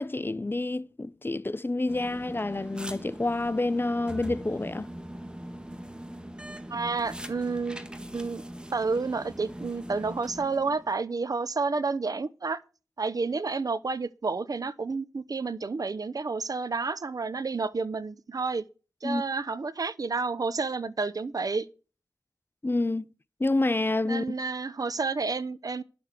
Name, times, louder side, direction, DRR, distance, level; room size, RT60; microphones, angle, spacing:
voice 1, 0.0-4.9 19.0-19.2 22.6-23.1 23.4-24.4, left 2 dB, 30° left, 0.6 m, -28 dB
sound 1, 1.9-11.0, right 1 dB, 15° right, 1.6 m, -41 dB
voice 2, 6.7-8.4 8.7-12.6 13.0-18.6 19.0-21.7 24.0-25.8, right 4 dB, 60° right, 0.7 m, -30 dB
11.0 x 7.0 x 7.5 m
cardioid pair, 50°, 7 cm